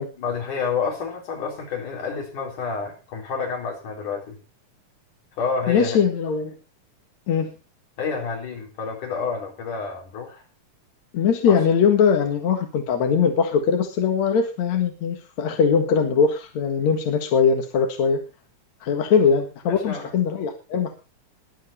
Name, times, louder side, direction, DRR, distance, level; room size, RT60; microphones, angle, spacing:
voice 1, 0.2-4.4 5.4-6.0 8.0-10.4 11.5-11.6 19.7-20.1, left 5 dB, 85° left, 2 dB, 5.2 m, -29 dB
voice 2, 5.7-6.5 7.3-7.5 11.1-18.2 18.8-20.9, left 6 dB, 65° left, 4 dB, 3.0 m, -21 dB
21.5 x 7.9 x 4.3 m, 0.30 s
omnidirectional pair, 3.5 m